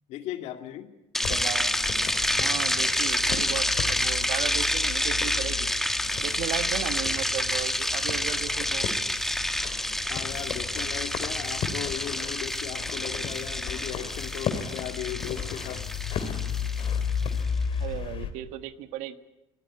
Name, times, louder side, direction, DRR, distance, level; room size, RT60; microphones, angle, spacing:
voice 1, 0.1-0.9 2.5-2.7 9.3-9.4 10.1-15.9, left 12 dB, 70° left, 7 dB, 2.4 m, -37 dB
sound 1, 1.1-17.4, left 1 dB, 5° left, 1.1 m, -28 dB
sound 2, 1.2-18.3, left 7 dB, 50° left, 3.0 m, -34 dB
voice 2, 1.3-1.7 2.3-5.7 6.2-8.9 17.8-19.1, right 13 dB, 85° right, 10 dB, 1.5 m, -36 dB
23.0 x 18.0 x 9.5 m, 0.95 s
cardioid pair, 140°, 12 cm